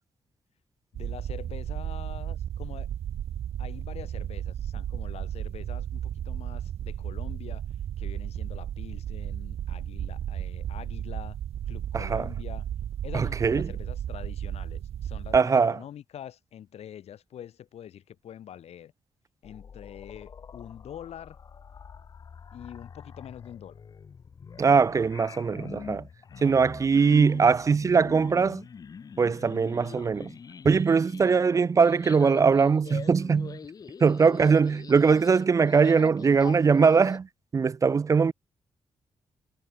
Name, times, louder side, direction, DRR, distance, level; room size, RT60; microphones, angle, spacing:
voice 1, 0.9-2.9 3.6-7.7 8.0-11.4 11.7-12.7 13.0-18.9 19.4-21.4 22.5-23.8 26.3-26.7 31.3-31.4, left 10 dB, 80° left, 2.6 m, -45 dB
sound 1, 0.9-15.4, right 10 dB, 75° right, 1.1 m, -34 dB
voice 2, 11.9-12.3 13.1-13.7 15.3-15.8 24.6-26.0 26.4-28.6 29.2-30.3 30.6-33.6 34.0-37.3 37.5-38.3, right 5 dB, 30° right, 0.7 m, -21 dB
sound 2, 19.4-37.2, left 6 dB, 35° left, 1.0 m, -44 dB
wide cardioid pair, 175°, 11 cm